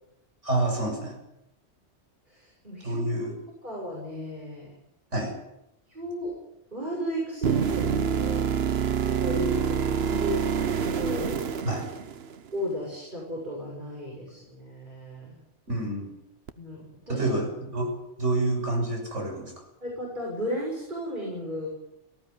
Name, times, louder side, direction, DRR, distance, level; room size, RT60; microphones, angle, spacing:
voice 1, 0.4-1.2 2.8-3.3 5.1-5.3 11.6-11.8 15.7-16.1 17.1-19.5, right 2 dB, 80° right, 1 dB, 6.8 m, -28 dB
voice 2, 2.3-3.3 3.6-4.7 5.9-6.3 6.7-7.9 8.2-8.5 9.0-10.4 11.0-11.4 12.5-15.4 16.6-17.3 19.8-21.7, equal, 40° right, -3 dB, 7.0 m, -34 dB
sound 1, 7.4-12.5 16.5-16.6, right 7 dB, 60° right, 1.1 m, -27 dB
18.5 x 15.5 x 9.7 m, 0.87 s
omnidirectional pair, 1.2 m